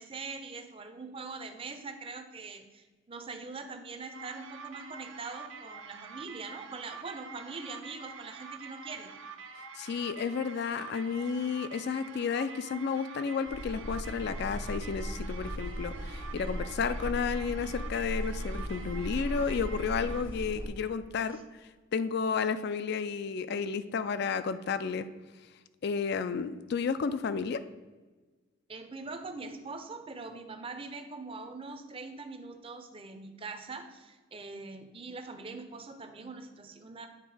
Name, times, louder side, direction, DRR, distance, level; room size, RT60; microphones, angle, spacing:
voice 1, 0.0-9.1 28.7-37.1, right 3 dB, 25° right, 7 dB, 0.5 m, -42 dB
sound 1, 4.1-20.3, right 5 dB, 70° right, 0.6 m, -46 dB
voice 2, 9.7-21.4 21.9-25.0 25.8-27.6, left 5 dB, 50° left, 13 dB, 0.3 m, -32 dB
sound 2, 13.5-20.7, equal, 70° left, 1.3 m, -37 dB
8.9 x 3.1 x 4.8 m, 1.3 s
head